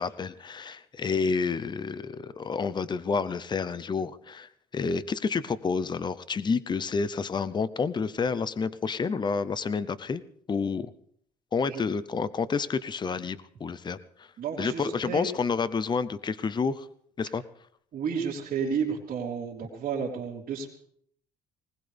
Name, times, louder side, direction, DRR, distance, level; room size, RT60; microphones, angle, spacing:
voice 1, 0.0-10.2 10.5-10.9 11.5-14.3 14.6-16.9 17.2-17.4, left 5 dB, 25° left, 16 dB, 0.7 m, -29 dB
voice 2, 14.4-15.3 17.9-20.7, right 6 dB, 60° right, -6 dB, 3.3 m, -31 dB
20.0 x 19.5 x 3.4 m, 0.65 s
cardioid pair, 110°, 17 cm